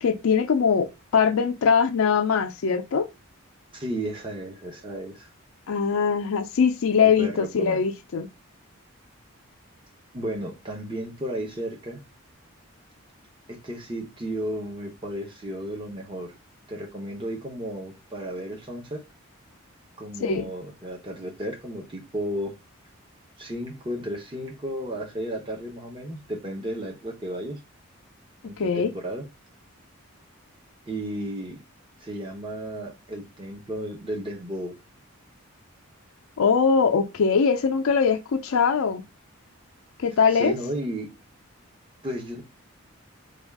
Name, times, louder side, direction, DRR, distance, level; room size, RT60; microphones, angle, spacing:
voice 1, 0.0-3.1 5.7-8.3 20.2-20.5 28.6-28.9 36.4-39.0 40.0-40.5, left 6 dB, 70° left, 0.4 m, -22 dB
voice 2, 3.7-5.3 7.2-7.8 10.1-12.0 13.5-16.3 16.7-19.0 20.0-22.5 23.4-27.6 28.4-29.3 30.9-31.6 32.0-34.7 40.3-41.1 42.0-42.4, right 1 dB, 20° right, 0.7 m, -33 dB
3.3 x 2.3 x 3.4 m
head